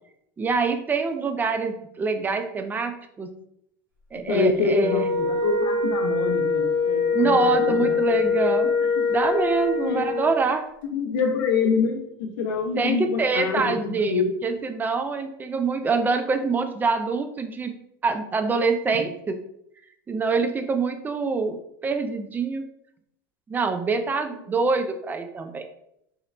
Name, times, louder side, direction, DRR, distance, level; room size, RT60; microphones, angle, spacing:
voice 1, 0.4-3.3 4.1-5.1 7.1-8.7 9.1-10.7 12.8-17.8 18.0-19.4 20.1-22.7 23.5-25.6, right 4 dB, 15° right, 7 dB, 0.4 m, -25 dB
voice 2, 4.1-8.4 9.8-10.0 10.9-14.3 18.9-19.0 24.5-24.6, left 5 dB, 80° left, 3 dB, 0.7 m, -26 dB
Wind instrument woodwind instrument, 4.8-10.4, left 4 dB, 75° right, 1.0 m, -24 dB
3.1 x 2.4 x 3.1 m, 0.76 s
supercardioid pair, 110°, 11 cm